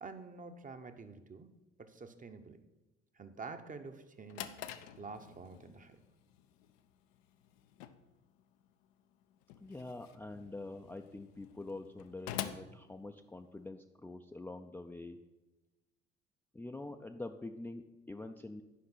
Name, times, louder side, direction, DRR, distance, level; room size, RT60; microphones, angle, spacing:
voice 1, 0.0-1.5 1.8-2.6 3.1-4.7 5.0-6.0, right 4 dB, 25° right, 8 dB, 0.9 m, -48 dB
Drawer open or close, 4.0-13.7, left 11 dB, 70° left, 0.6 m, -48 dB
voice 2, 9.6-15.2 16.5-18.6, left 2 dB, 5° left, 4 dB, 0.4 m, -45 dB
10.5 x 5.2 x 5.8 m, 1.0 s
figure-of-eight pair, 50°, 31 cm